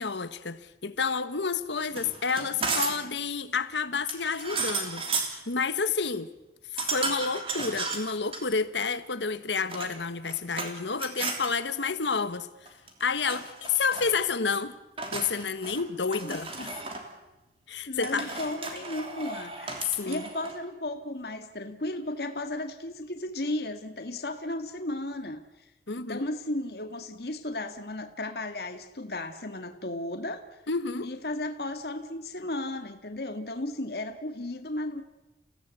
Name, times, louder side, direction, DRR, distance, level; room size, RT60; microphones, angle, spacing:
voice 1, 0.0-6.3 6.7-12.5 13.0-14.8 15.1-16.5 17.7-18.3 20.0-20.2 25.9-26.3 30.7-31.1, left 5 dB, 85° left, 13 dB, 1.4 m, -30 dB
sound 1, 1.9-3.1 4.1-5.4 6.8-8.4 9.5-10.7 11.0-11.5 12.7-13.0 13.3-14.2 15.0-15.8 16.1-17.0 18.0-20.6, right 3 dB, 30° right, 3.2 m, -34 dB
voice 2, 16.2-16.7 17.9-25.7 26.0-30.4 31.0-35.0, left 1 dB, 60° left, 7 dB, 1.8 m, -35 dB
29.5 x 16.5 x 8.2 m, 1.0 s
head